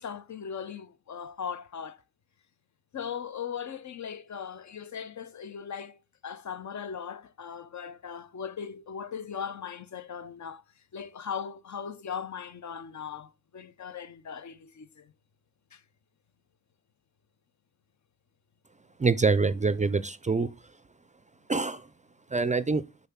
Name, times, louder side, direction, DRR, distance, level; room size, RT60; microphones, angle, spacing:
voice 1, 0.0-2.0 2.9-10.6 10.9-15.1 15.7-15.8, left 7 dB, 60° left, 0.7 m, -39 dB
voice 2, 19.0-20.5 21.5-21.9 22.3-22.8, right 4 dB, 25° right, 0.4 m, -25 dB
5.6 x 3.8 x 5.6 m
cardioid pair, 80°, 33 cm